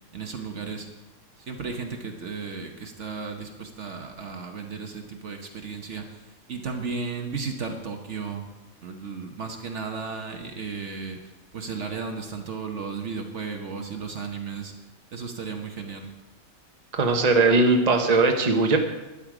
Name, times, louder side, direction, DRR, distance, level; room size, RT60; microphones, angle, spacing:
voice 1, 0.1-0.9 1.5-6.2 6.5-8.4 8.8-11.2 11.5-14.7 15.1-16.1, right 5 dB, 55° right, 4 dB, 1.3 m, -34 dB
voice 2, 16.9-18.8, right 3 dB, 30° right, 4 dB, 1.1 m, -19 dB
12.0 x 9.9 x 5.0 m, 1.1 s
omnidirectional pair, 1.5 m